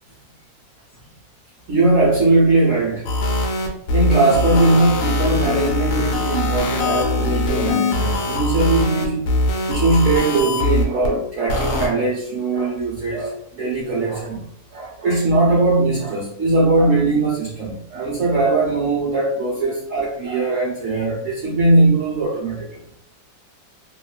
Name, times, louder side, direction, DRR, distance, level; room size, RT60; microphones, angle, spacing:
voice 1, 1.7-3.1 3.9-9.3 9.7-14.5 14.7-22.8, right 2 dB, 80° right, -3 dB, 0.7 m, -20 dB
sound 1, 3.0-11.1 11.5-11.9, left 2 dB, 80° left, 1.3 m, -21 dB
2.9 x 2.2 x 2.2 m, 0.70 s
omnidirectional pair, 2.0 m